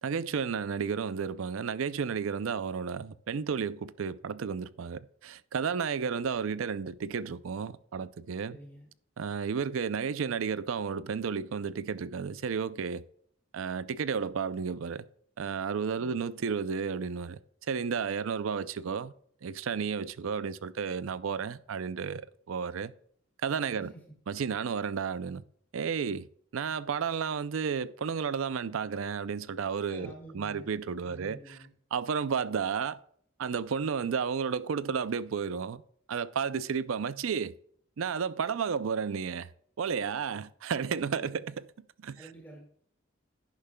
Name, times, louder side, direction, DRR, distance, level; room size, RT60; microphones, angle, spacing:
voice 1, 0.0-8.6 9.2-13.0 13.5-15.1 15.4-17.4 17.7-19.1 19.4-22.9 23.4-23.9 24.3-25.4 25.7-26.3 26.5-31.6 31.9-33.0 33.4-35.8 36.1-37.6 38.0-39.5 39.8-42.2, right 6 dB, 80° right, 0.4 m, -32 dB
voice 2, 8.5-8.9 15.9-16.1 23.7-24.0 29.9-30.7 31.0-31.7 41.2-41.3 42.1-42.7, right 1 dB, 10° left, 1.9 m, -49 dB
10.5 x 10.0 x 2.2 m
head